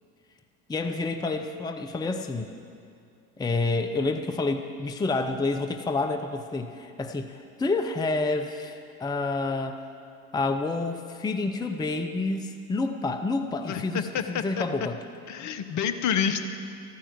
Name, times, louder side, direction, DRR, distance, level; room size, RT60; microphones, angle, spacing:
voice 1, 0.7-2.5 3.4-9.8 10.3-15.0, left 3 dB, 10° left, 6 dB, 0.7 m, -29 dB
voice 2, 13.7-14.6 15.3-16.5, left 7 dB, 45° left, 9 dB, 1.0 m, -28 dB
14.0 x 9.4 x 7.6 m, 2.5 s
figure-of-eight pair, 70°, 42 cm